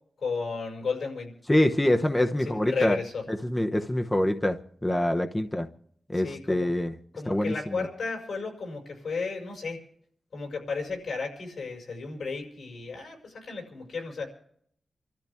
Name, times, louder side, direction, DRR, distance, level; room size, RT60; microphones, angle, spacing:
voice 1, 0.2-1.3 2.4-3.2 6.1-6.7 7.1-9.8 10.3-14.3, left 4 dB, 85° left, 1 dB, 5.8 m, -33 dB
voice 2, 1.5-3.0 3.3-5.7 6.1-6.9 7.3-7.9, left 1 dB, 15° left, 6 dB, 0.8 m, -25 dB
29.0 x 13.5 x 3.5 m, 0.65 s
wide cardioid pair, 100°, 0 cm